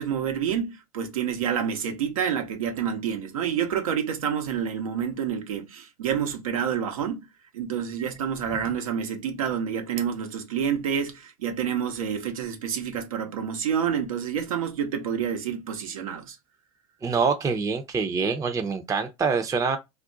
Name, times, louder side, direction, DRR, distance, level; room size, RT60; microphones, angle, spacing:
voice 1, 0.0-7.3 7.5-16.4, right 8 dB, 80° right, 0.9 m, -28 dB
voice 2, 17.0-19.8, right 5 dB, 20° right, 0.6 m, -25 dB
2.5 x 2.2 x 3.8 m
hypercardioid pair, 90°, 18 cm